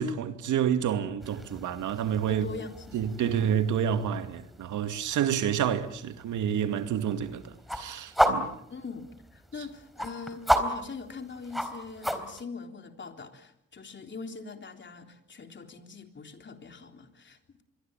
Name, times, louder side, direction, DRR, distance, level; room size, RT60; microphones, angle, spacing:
voice 1, 0.0-2.4 2.9-8.5, right 9 dB, 80° right, 2.4 m, -29 dB
sound 1, 1.2-12.4, equal, ahead, 3.7 m, -33 dB
voice 2, 2.3-3.4 8.7-17.6, left 4 dB, 40° left, 3.7 m, -42 dB
25.5 x 22.5 x 9.0 m
cardioid pair, 90°, 30 cm